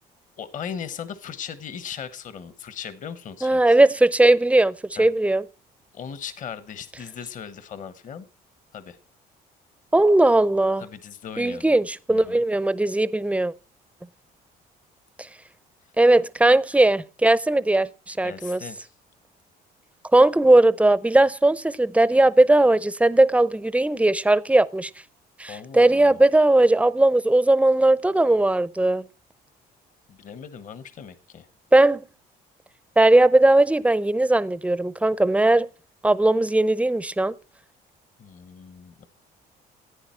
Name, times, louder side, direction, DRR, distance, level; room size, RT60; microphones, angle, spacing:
voice 1, 0.4-3.6 5.0-5.1 5.9-8.2 8.7-9.0 10.8-11.8 12.1-12.4 18.2-18.9 25.5-26.2 30.1-31.5 38.2-39.1, left 7 dB, 50° left, 1.2 m, -38 dB
voice 2, 3.4-5.4 9.9-10.8 11.4-13.5 16.0-18.6 20.1-24.9 25.4-29.1 31.7-32.0 33.0-35.7 36.0-37.3, right 2 dB, 10° right, 0.6 m, -18 dB
15.0 x 9.1 x 4.4 m
cardioid pair, 110°, 17 cm